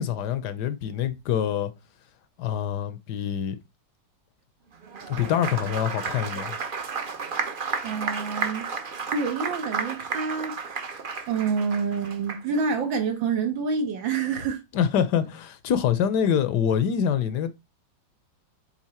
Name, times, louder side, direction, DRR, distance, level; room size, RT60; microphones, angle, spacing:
voice 1, 0.0-1.7 2.4-3.6 5.1-6.6 14.7-17.5, left 8 dB, 70° left, 1.2 m, -25 dB
Applause, 4.8-12.6, right 5 dB, 55° right, 0.6 m, -32 dB
voice 2, 7.8-8.7 9.1-10.8 11.3-14.6, right 5 dB, 85° right, 2.1 m, -27 dB
7.4 x 3.6 x 4.3 m
omnidirectional pair, 2.0 m